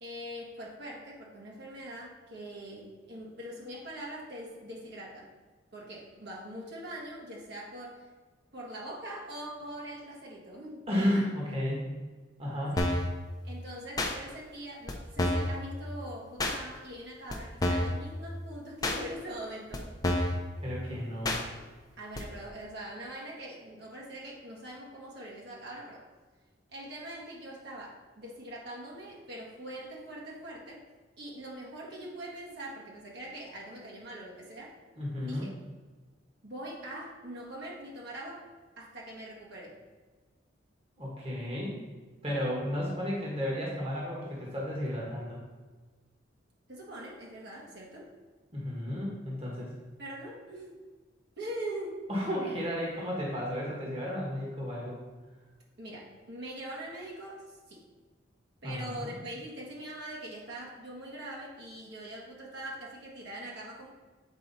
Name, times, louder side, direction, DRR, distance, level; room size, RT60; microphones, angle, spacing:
voice 1, 0.0-5.3 5.7-8.1 8.5-10.8 13.4-19.9 22.0-26.0 26.7-30.8 31.2-34.7 35.2-35.5 36.4-38.4 38.8-39.8 46.7-48.1 50.0-50.8 51.4-52.0 55.8-57.8 58.6-63.9, right 1 dB, 55° right, -4 dB, 1.6 m, -42 dB
voice 2, 10.9-11.9 12.4-12.8 20.6-21.4 35.0-35.5 41.0-41.8 42.2-45.4 48.5-49.7 52.1-55.0 58.6-59.1, equal, 30° right, -4 dB, 1.5 m, -33 dB
sound 1, 12.8-13.1 14.0-14.1 14.9-15.0 15.2-15.5 16.4-16.6 17.3-17.4 17.6-18.0 18.8-19.0 19.7-19.8 20.0-20.4 21.2-21.4 22.2-22.3, left 1 dB, 20° left, 0.7 m, -28 dB
8.1 x 4.6 x 4.1 m, 1.4 s
head